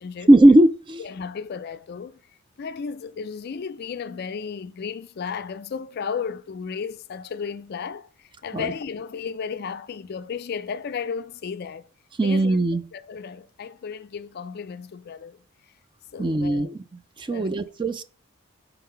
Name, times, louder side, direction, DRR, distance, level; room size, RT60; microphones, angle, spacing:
voice 1, 0.3-1.0 8.5-8.7 12.2-12.8 16.2-16.8 17.2-18.0, right 1 dB, 20° right, 0.4 m, -18 dB
voice 2, 1.0-2.2 2.6-11.9 12.2-12.6 12.9-15.4 16.1-16.7 17.3-17.6, left 6 dB, 45° left, 0.3 m, -34 dB
5.6 x 3.9 x 5.5 m
head